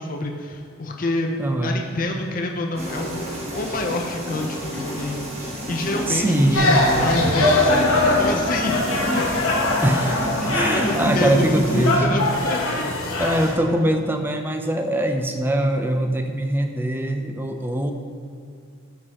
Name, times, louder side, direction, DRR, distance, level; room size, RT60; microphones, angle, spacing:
voice 1, 0.0-1.3 1.6-8.8 10.4-12.8, left 2 dB, 40° left, 2 dB, 0.6 m, -28 dB
voice 2, 1.4-1.8 6.1-6.9 9.8-10.2 10.5-12.3 13.2-17.9, right 1 dB, 10° right, 5 dB, 0.4 m, -22 dB
sound 1, 2.8-12.0, equal, 30° right, 1.3 m, -30 dB
sound 2, 6.5-13.6, left 2 dB, 80° left, 1.1 m, -22 dB
13.0 x 4.8 x 2.9 m, 2.3 s
head